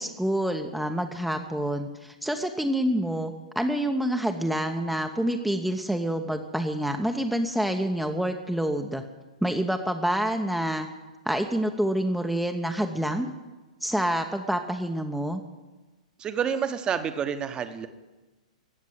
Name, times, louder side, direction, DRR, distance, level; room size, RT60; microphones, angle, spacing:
voice 1, 0.0-9.0 9.4-10.9 11.3-13.3 13.8-15.4, right 1 dB, ahead, 4 dB, 0.9 m, -27 dB
voice 2, 16.2-17.9, right 7 dB, 20° right, 10 dB, 1.2 m, -28 dB
16.5 x 7.3 x 9.8 m, 1.2 s
figure-of-eight pair, 110°, 4 cm